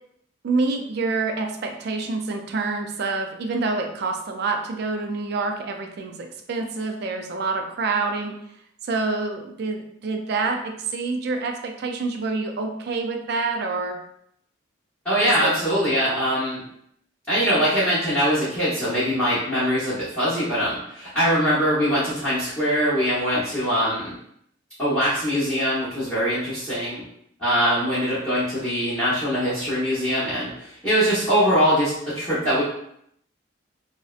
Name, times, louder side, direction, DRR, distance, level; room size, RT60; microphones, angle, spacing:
voice 1, 0.4-8.3 8.8-14.0 15.2-15.6, right 3 dB, 55° right, 4 dB, 0.3 m, -27 dB
voice 2, 15.0-16.6 17.3-24.1 24.8-27.0 27.4-32.6, equal, 5° left, -15 dB, 0.8 m, -22 dB
2.6 x 2.1 x 2.3 m, 0.72 s
head